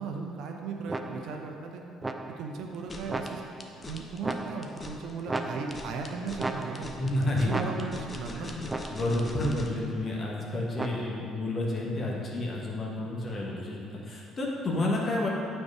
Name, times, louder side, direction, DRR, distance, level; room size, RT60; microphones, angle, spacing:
voice 1, 0.0-1.8 2.4-3.4 3.9-6.9 7.2-8.6, right 4 dB, 60° right, 2 dB, 0.7 m, -37 dB
sound 1, 0.9-1.5 2.0-2.6 3.1-3.7 4.2-4.9 5.3-6.0 6.4-7.1 7.5-8.2 8.7-9.3 10.8-11.4, right 2 dB, 20° right, 0.4 m, -36 dB
sound 2, 2.7-9.8, left 2 dB, 25° left, 0.8 m, -43 dB
voice 2, 7.0-7.6 8.3-8.6 8.9-15.3, left 1 dB, 40° left, -3 dB, 1.4 m, -30 dB
8.7 x 4.5 x 4.8 m, 2.6 s
figure-of-eight pair, 50°, 0 cm